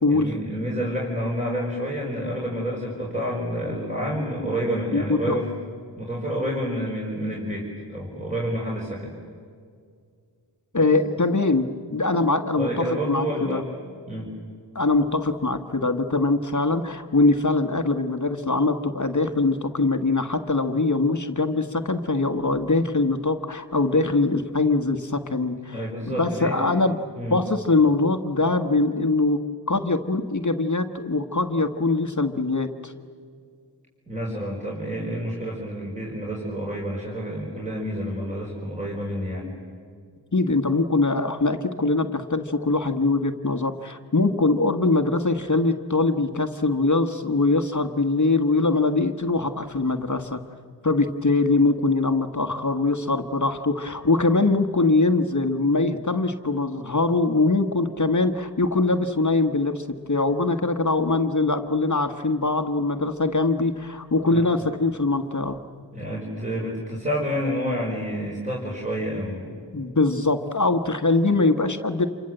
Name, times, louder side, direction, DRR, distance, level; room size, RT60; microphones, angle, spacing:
voice 1, 0.1-5.5 6.0-9.1 12.6-13.6 14.1-14.3 25.7-26.6 27.1-27.4 34.1-39.5 64.3-64.4 65.9-69.5, equal, 15° right, -3 dB, 5.1 m, -29 dB
voice 2, 4.9-5.4 10.7-13.6 14.7-29.4 29.7-32.9 40.3-50.4 50.8-65.6 69.7-72.1, left 3 dB, 45° left, 6 dB, 1.4 m, -22 dB
27.5 x 24.0 x 7.9 m, 2.2 s
wide cardioid pair, 55°, 43 cm